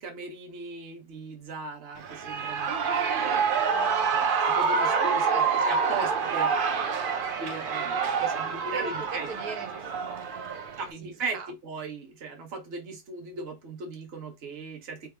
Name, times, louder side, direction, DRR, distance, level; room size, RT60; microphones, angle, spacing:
voice 1, 0.0-2.7 4.1-6.5 7.4-9.3 10.8-15.1, right 3 dB, 45° right, 1.1 m, -38 dB
Shout / Cheering, 2.0-10.9, right 5 dB, 65° right, 0.5 m, -27 dB
voice 2, 2.7-4.5 4.8-6.1 8.2-8.4 8.7-10.6 11.0-11.5, right 6 dB, 85° right, 1.4 m, -41 dB
4.4 x 2.0 x 4.3 m
omnidirectional pair, 1.6 m